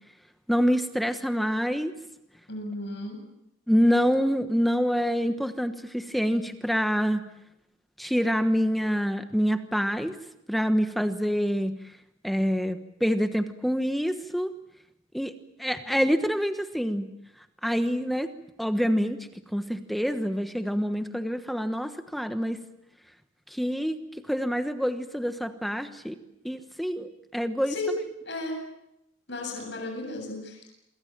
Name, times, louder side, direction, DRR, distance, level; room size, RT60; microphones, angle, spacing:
voice 1, 0.5-1.9 3.7-7.2 8.0-10.1 10.5-11.7 12.2-14.5 15.1-15.3 15.6-17.1 17.6-18.3 18.6-19.2 19.5-22.6 23.5-24.0 24.3-26.1 26.4-27.7, equal, ahead, 8 dB, 1.2 m, -26 dB
voice 2, 2.5-3.2 27.7-28.7 29.3-30.7, left 1 dB, 60° left, 3 dB, 7.9 m, -34 dB
27.5 x 23.5 x 7.5 m, 0.84 s
head